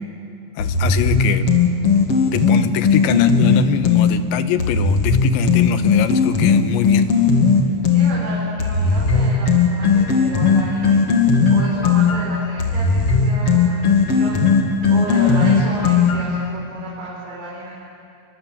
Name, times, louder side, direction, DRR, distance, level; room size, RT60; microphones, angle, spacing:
voice 1, 0.6-1.5 2.3-7.1, left 10 dB, 85° left, 9 dB, 3.4 m, -24 dB
sound 1, 0.6-4.1 4.6-8.1 8.6-16.4, left 5 dB, 40° left, 2.5 m, -16 dB
voice 2, 7.6-11.0 11.5-14.4 14.9-17.7, right 1 dB, 85° right, -4 dB, 6.5 m, -32 dB
30.0 x 23.0 x 8.0 m, 2.5 s
omnidirectional pair, 5.1 m